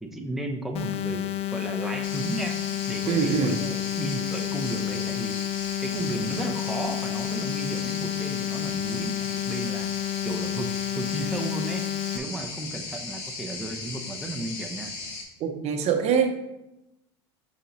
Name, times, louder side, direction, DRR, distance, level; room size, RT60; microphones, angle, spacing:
voice 1, 0.0-2.6 2.9-5.4 5.8-9.9 10.2-11.9 12.1-14.9, right 2 dB, ahead, 1 dB, 0.8 m, -34 dB
sound 1, 0.7-12.2, left 13 dB, 45° left, 0.5 m, -30 dB
sound 2, 2.0-15.2, left 3 dB, 65° left, 1.7 m, -37 dB
voice 2, 3.1-3.6 15.4-16.3, right 6 dB, 50° right, 6 dB, 0.8 m, -24 dB
6.5 x 5.1 x 3.0 m, 0.92 s
supercardioid pair, 100°, 14 cm